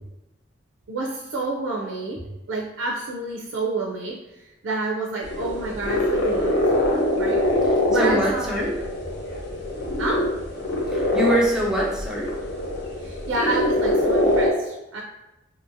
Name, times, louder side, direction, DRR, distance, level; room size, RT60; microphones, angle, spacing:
voice 1, 0.9-2.2 2.5-7.4 7.9-8.6 10.0-10.2 13.0-15.0, right 2 dB, 75° right, -2 dB, 0.4 m, -29 dB
sound 1, 5.2-14.5, left 1 dB, 60° left, 0.6 m, -24 dB
voice 2, 7.9-8.8 10.9-12.3, right 1 dB, 5° right, -3 dB, 0.5 m, -23 dB
2.7 x 2.5 x 2.6 m, 0.96 s
head